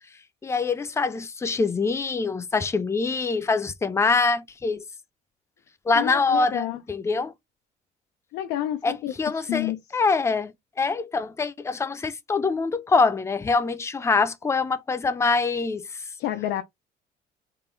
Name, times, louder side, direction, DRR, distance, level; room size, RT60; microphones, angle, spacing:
voice 1, 0.4-4.8 5.9-7.3 8.8-8.9 9.2-15.9, left 4 dB, 15° left, 0.5 m, -24 dB
voice 2, 5.9-6.8 8.3-9.8 16.2-16.6, left 13 dB, 85° left, 0.5 m, -29 dB
3.7 x 2.2 x 3.8 m
cardioid pair, 110°, 17 cm